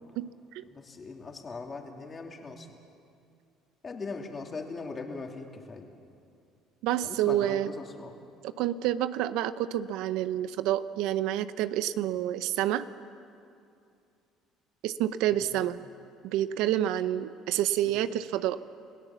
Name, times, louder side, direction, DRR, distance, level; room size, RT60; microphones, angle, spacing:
voice 1, 0.2-0.6 6.8-7.7 8.4-12.9 14.8-15.8 16.2-18.6, right 12 dB, 80° right, 13 dB, 0.7 m, -28 dB
voice 2, 0.7-2.7 3.8-5.9 7.0-8.2 15.5-15.6 17.9-18.0, left 4 dB, 30° left, 2 dB, 2.7 m, -40 dB
29.0 x 16.5 x 7.2 m, 2.5 s
cardioid pair, 100°, 0 cm